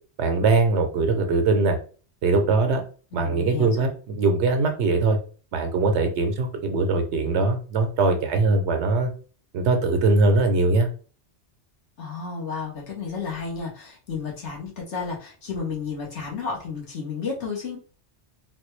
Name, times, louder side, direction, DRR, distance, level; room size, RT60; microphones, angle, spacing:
voice 1, 0.2-1.8 2.2-2.8 3.1-5.2 5.5-9.1 9.5-10.9, right 3 dB, 75° right, 5 dB, 1.0 m, -21 dB
voice 2, 3.1-3.9 12.0-17.8, left 5 dB, 80° left, -3 dB, 1.5 m, -32 dB
3.8 x 2.2 x 3.1 m, 0.39 s
omnidirectional pair, 1.2 m